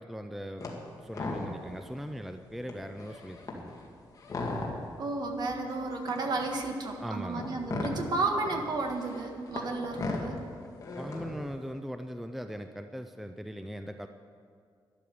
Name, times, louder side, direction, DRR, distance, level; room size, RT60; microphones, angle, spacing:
voice 1, 0.0-3.8 7.0-7.5 11.0-14.1, equal, ahead, 8 dB, 0.4 m, -40 dB
sound 1, 0.6-0.8 1.1-1.8 2.2-2.3 2.6-5.0 5.7-11.5, left 2 dB, 40° left, 2.1 m, -37 dB
voice 2, 5.0-10.5, right 3 dB, 55° right, 3 dB, 1.6 m, -32 dB
sound 2, 5.1-10.1, left 2 dB, 20° left, 3.4 m, -61 dB
12.5 x 11.5 x 6.9 m, 2.1 s
wide cardioid pair, 160°, 9 cm